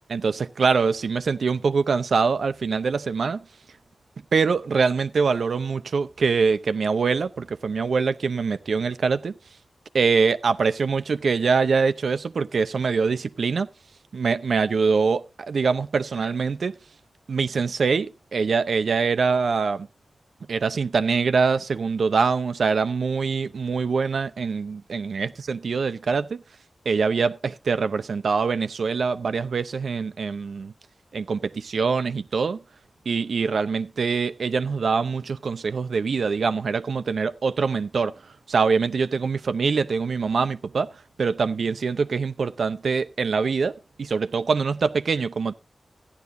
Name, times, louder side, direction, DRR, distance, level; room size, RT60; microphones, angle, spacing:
voice 1, 0.1-3.4 4.3-9.3 9.9-13.7 14.1-16.8 17.3-19.9 20.5-26.4 26.9-30.7 31.1-32.6 33.1-38.1 38.5-40.9 41.2-45.5, right 5 dB, 85° right, 0.6 m, -24 dB
15.0 x 10.5 x 2.6 m
wide cardioid pair, 120°, 0 cm